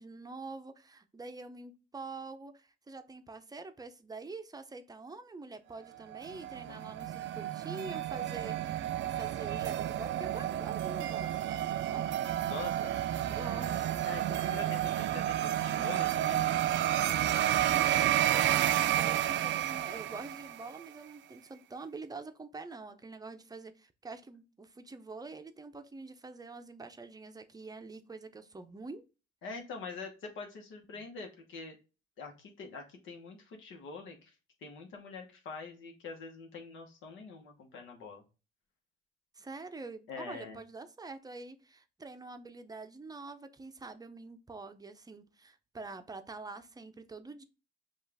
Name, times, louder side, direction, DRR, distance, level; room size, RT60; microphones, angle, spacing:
voice 1, 0.0-12.5 12.8-13.0 13.3-13.9 14.3-14.7 17.0-29.0 31.0-31.1 39.4-47.4, right 3 dB, 20° right, 0.6 m, -46 dB
sound 1, 6.1-20.8, right 12 dB, 65° right, 0.4 m, -31 dB
voice 2, 12.4-12.9 14.0-16.5 29.4-31.8 32.2-34.3 34.6-38.2 40.1-40.6, left 4 dB, 80° left, 1.0 m, -45 dB
5.5 x 2.4 x 3.4 m
cardioid pair, 90°, 20 cm